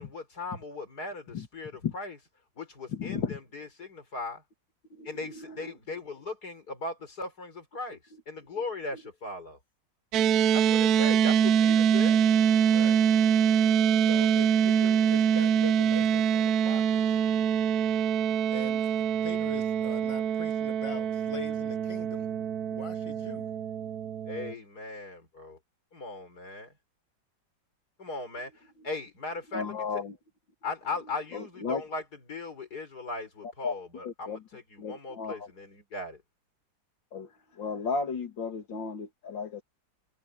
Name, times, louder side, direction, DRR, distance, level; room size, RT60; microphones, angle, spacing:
voice 1, 0.0-2.2 2.6-4.4 5.0-8.0 8.3-9.6 10.5-12.2 24.3-25.6 25.9-26.7 28.0-28.5 28.8-29.8 30.6-32.0 32.3-34.6 34.9-36.2, left 3 dB, 55° left, 5.1 m, -38 dB
voice 2, 2.9-3.4 4.9-5.7 8.9-9.0 28.8-28.9 29.5-30.2 31.3-31.8 33.4-33.7 34.0-34.4 34.8-35.5 37.1-39.6, left 5 dB, 85° left, 2.8 m, -34 dB
sound 1, 10.1-24.5, right 8 dB, 65° right, 1.1 m, -24 dB
voice 3, 12.7-13.0 14.0-17.2 18.5-22.3 22.7-23.5, left 2 dB, 15° left, 2.4 m, -41 dB
omnidirectional pair, 2.0 m